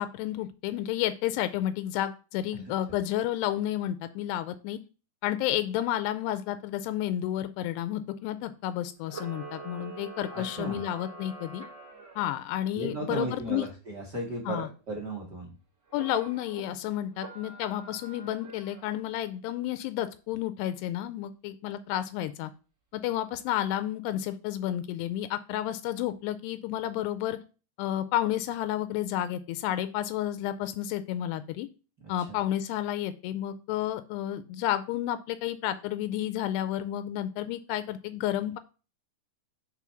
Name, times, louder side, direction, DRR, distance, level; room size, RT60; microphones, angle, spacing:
voice 1, 0.0-4.8 5.2-11.6 12.2-13.7 14.5-14.7 15.9-22.5 22.9-27.4 27.8-31.7 32.1-38.6, left 12 dB, 85° left, 10 dB, 2.6 m, -31 dB
Camera, 9.0-12.3 15.9-16.6 17.1-19.0, right 3 dB, 45° right, 1.4 m, -44 dB
voice 2, 10.3-10.8 12.7-15.5 32.3-32.4, right 2 dB, 85° right, -3 dB, 0.9 m, -35 dB
6.1 x 4.1 x 5.7 m, 0.34 s
omnidirectional pair, 4.7 m